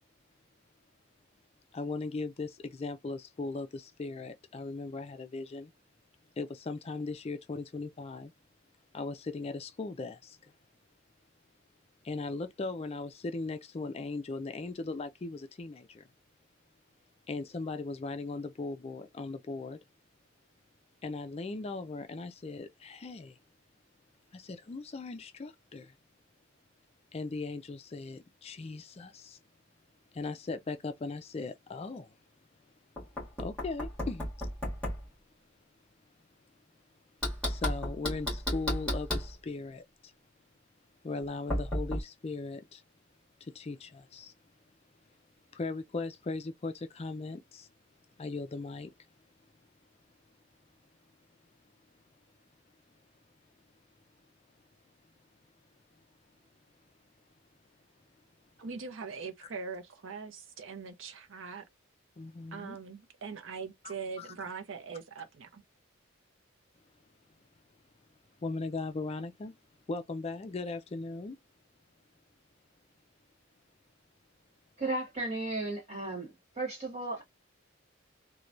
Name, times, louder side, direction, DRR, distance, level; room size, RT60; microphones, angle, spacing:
voice 1, 1.7-5.7 6.4-8.3 8.9-10.4 12.0-16.0 17.3-19.8 21.0-23.4 24.3-25.9 27.1-29.4 30.1-32.1 33.4-34.3 37.5-40.1 41.0-42.8 43.4-44.3 45.5-47.7 48.2-48.9 62.2-62.8 63.8-64.3 68.4-69.5 69.9-71.4, left 3 dB, 30° left, 0.4 m, -38 dB
Knock, 33.0-35.1 37.2-39.3 41.5-42.0, left 1 dB, 5° left, 1.5 m, -33 dB
voice 2, 58.6-61.6 62.5-65.6, right 5 dB, 65° right, 0.6 m, -42 dB
voice 3, 74.8-77.2, right 2 dB, 30° right, 1.6 m, -35 dB
3.1 x 2.2 x 2.5 m
head